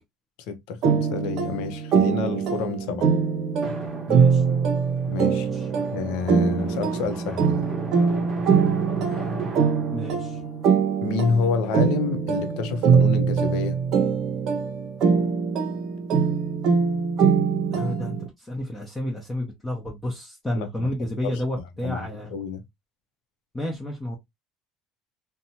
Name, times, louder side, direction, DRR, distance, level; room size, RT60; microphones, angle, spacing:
voice 1, 0.5-3.1 5.1-5.5 5.9-7.7 11.0-13.8 20.5-20.9 21.2-21.4 21.8-22.6, left 5 dB, 75° left, 0.6 m, -28 dB
sound 1, 0.8-18.3, right 6 dB, 55° right, 0.7 m, -23 dB
Drum, 3.6-11.9, right 2 dB, 25° right, 0.8 m, -38 dB
voice 2, 4.1-4.4 5.5-5.7 9.9-10.4 17.7-22.3 23.5-24.2, left 1 dB, 10° left, 0.7 m, -31 dB
2.7 x 2.2 x 2.8 m
cardioid pair, 130°, 0 cm